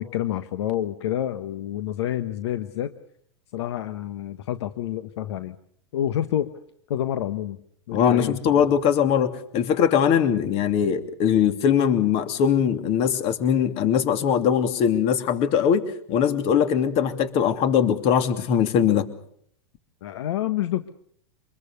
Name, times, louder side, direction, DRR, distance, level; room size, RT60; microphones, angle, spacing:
voice 1, 0.0-2.9 3.5-5.5 5.9-6.5 6.9-7.6 7.9-8.4 20.0-20.9, left 12 dB, 70° left, 11 dB, 1.3 m, -28 dB
voice 2, 7.9-19.1, left 8 dB, 45° left, 9 dB, 2.9 m, -21 dB
26.0 x 21.5 x 6.8 m, 0.65 s
hypercardioid pair, 120°, 15 cm